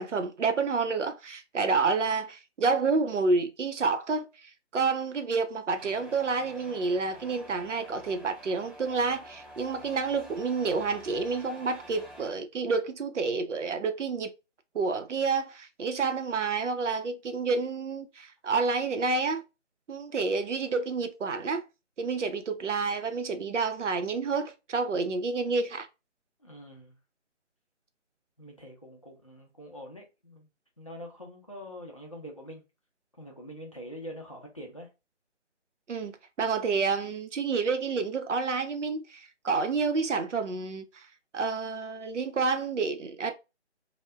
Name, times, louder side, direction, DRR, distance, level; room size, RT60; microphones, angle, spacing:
voice 1, 0.0-4.3 4.7-14.3 14.7-19.4 19.9-21.6 22.0-25.9 35.9-41.0 41.3-43.3, right 4 dB, 90° right, 0.6 m, -29 dB
sound 1, 5.8-12.3, equal, 20° right, 0.7 m, -49 dB
voice 2, 26.4-27.0 28.4-30.5 30.8-32.6 33.2-34.9, equal, 30° left, 0.4 m, -44 dB
2.2 x 2.1 x 3.3 m
figure-of-eight pair, 155°, 35 cm